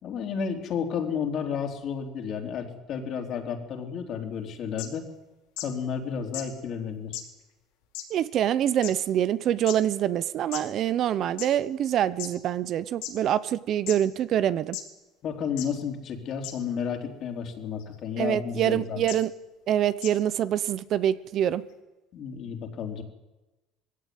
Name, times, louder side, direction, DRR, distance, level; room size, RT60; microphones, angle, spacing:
voice 1, 0.0-5.1 5.6-7.2 15.2-19.0 22.1-23.0, left 7 dB, 50° left, 4 dB, 3.6 m, -32 dB
sound 1, 4.8-4.9 5.6-5.7 6.3-6.4 7.1-7.2 7.9-8.0 8.8-8.9 9.7-9.8 10.5-10.6 11.4-11.5 12.2-12.3 13.0-13.1 13.9-14.0 14.7-14.8 15.6-15.7 16.4-16.5 17.8-18.0 19.1-19.2 20.0-20.1, left 14 dB, 90° left, 4.3 m, -34 dB
voice 2, 8.1-14.8 18.2-19.3 19.7-21.6, right 10 dB, 50° right, 15 dB, 0.9 m, -25 dB
21.0 x 16.5 x 9.5 m, 1.1 s
cardioid pair, 125°, 0 cm